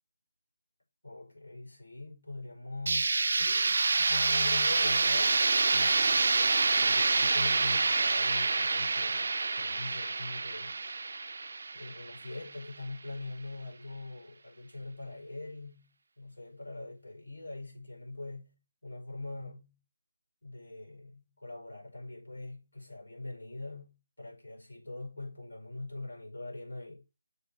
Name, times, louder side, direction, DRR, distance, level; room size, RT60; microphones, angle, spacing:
voice 1, 1.0-5.4 5.7-6.3 6.8-10.8 11.7-18.6 18.8-19.8 20.4-27.0, left 2 dB, 80° left, 5.0 m, -43 dB
sound 1, 2.9-12.6, right 3 dB, 55° right, 0.4 m, -27 dB
6.8 x 3.9 x 6.3 m
figure-of-eight pair, 155°, 0 cm